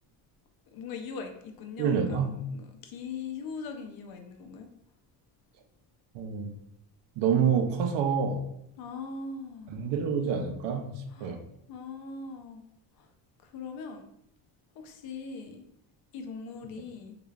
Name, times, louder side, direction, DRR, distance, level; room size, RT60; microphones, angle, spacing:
voice 1, 0.7-4.7 8.8-9.7 11.1-11.4 11.7-12.6 13.0-13.1 13.4-14.1 14.7-15.6 16.1-17.2, left 5 dB, 60° left, 5 dB, 0.6 m, -41 dB
voice 2, 1.8-2.3 6.1-6.5 7.2-8.5 9.7-11.4, right 6 dB, 85° right, 5 dB, 0.7 m, -27 dB
3.7 x 3.2 x 2.4 m, 0.76 s
cardioid pair, 175°, 41 cm